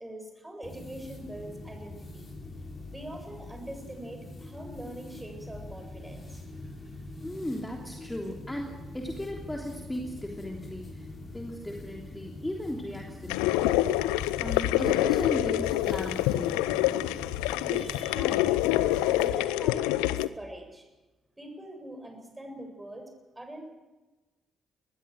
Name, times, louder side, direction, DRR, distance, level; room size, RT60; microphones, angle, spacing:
voice 1, 0.0-2.3 2.9-7.1 17.6-18.6 19.0-20.9 21.4-23.6, right 1 dB, 10° right, 4 dB, 7.6 m, -43 dB
sound 1, 0.6-19.4, left 2 dB, 40° left, 6.4 m, -44 dB
voice 2, 7.2-14.1 14.4-16.7, left 1 dB, 10° left, 1 dB, 3.3 m, -37 dB
sound 2, 13.3-20.3, left 16 dB, 70° left, 0.6 m, -26 dB
23.5 x 20.0 x 6.5 m, 1.1 s
figure-of-eight pair, 40°, 0 cm